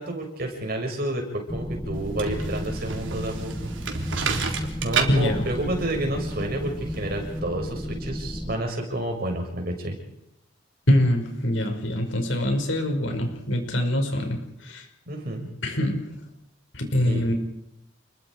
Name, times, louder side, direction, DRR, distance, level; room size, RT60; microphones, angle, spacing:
voice 1, 0.0-3.7 4.8-10.0 15.1-15.5 17.1-17.2, right 1 dB, 50° right, 2 dB, 6.3 m, -30 dB
sound 1, 1.5-8.6, equal, 5° left, 1.5 m, -33 dB
sound 2, 1.9-7.4, right 5 dB, 90° right, 3.7 m, -31 dB
voice 2, 5.1-5.4 10.9-14.9 15.6-16.2 16.7-17.3, left 1 dB, 85° left, 3 dB, 5.8 m, -24 dB
29.5 x 22.0 x 4.9 m, 0.82 s
head